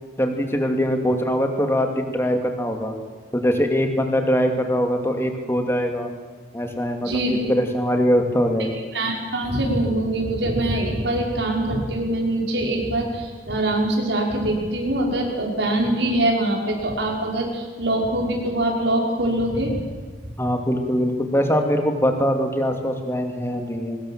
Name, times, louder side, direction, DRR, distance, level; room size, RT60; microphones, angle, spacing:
voice 1, 0.2-2.9 3.3-6.1 6.5-8.8 20.4-24.0, equal, 15° left, 4 dB, 2.7 m, -22 dB
voice 2, 7.0-7.5 8.9-19.8, right 1 dB, 80° right, 0 dB, 5.9 m, -23 dB
24.0 x 20.0 x 7.6 m, 1.5 s
head